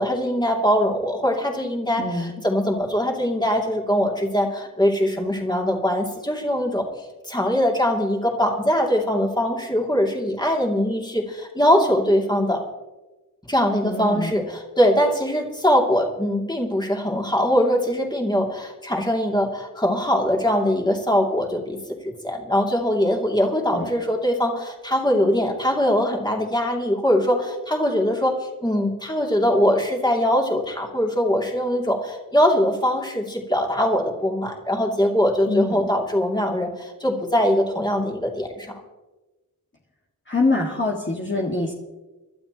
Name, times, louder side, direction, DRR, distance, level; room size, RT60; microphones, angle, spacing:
voice 1, 0.0-6.9 7.3-12.6 13.5-21.8 22.0-38.7, equal, 10° left, 0 dB, 2.8 m, -22 dB
voice 2, 2.0-2.3 13.8-14.4 23.7-23.9 35.5-35.9 40.3-41.7, left 2 dB, 30° left, -2 dB, 1.9 m, -24 dB
25.5 x 12.0 x 3.0 m, 1.1 s
wide cardioid pair, 75°, 36 cm